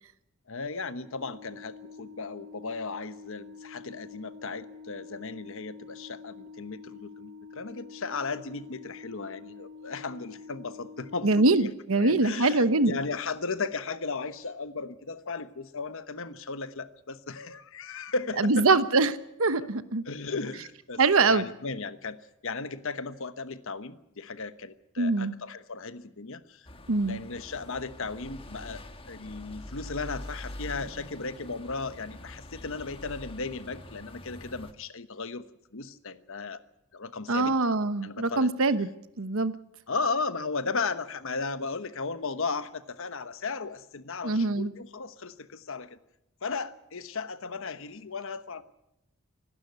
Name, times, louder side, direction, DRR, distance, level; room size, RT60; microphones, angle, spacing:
voice 1, 0.5-11.7 12.0-18.7 20.1-26.7 27.0-28.8 29.1-35.4 35.7-36.6 36.9-37.6 38.0-38.5 39.9-46.0 46.4-48.6, left 4 dB, 65° left, 12 dB, 1.2 m, -36 dB
Organ, 1.0-11.8, left 5 dB, 10° right, 2.5 m, -47 dB
voice 2, 11.2-13.0 18.4-20.0 21.0-21.4 25.0-25.3 26.9-27.2 37.3-38.9 39.2-39.6 44.2-44.7, right 3 dB, 65° right, 13 dB, 1.1 m, -23 dB
sound 1, 26.7-34.7, left 1 dB, 25° left, 1.5 m, -44 dB
26.5 x 12.5 x 9.5 m, 0.85 s
head